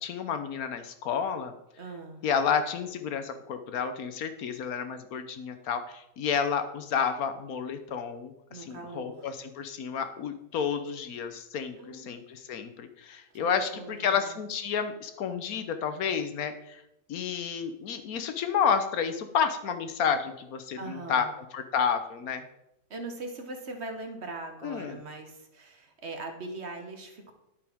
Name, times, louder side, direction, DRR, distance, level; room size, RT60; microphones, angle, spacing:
voice 1, 0.0-1.5 2.2-16.8 17.1-21.3 21.5-22.4 24.6-25.0, left 7 dB, 75° left, 9 dB, 1.3 m, -30 dB
voice 2, 1.8-2.2 8.5-9.3 11.8-12.2 13.3-14.4 20.8-21.3 22.9-27.3, right 2 dB, 50° right, 4 dB, 1.4 m, -41 dB
10.0 x 8.5 x 3.5 m, 0.85 s
omnidirectional pair, 1.5 m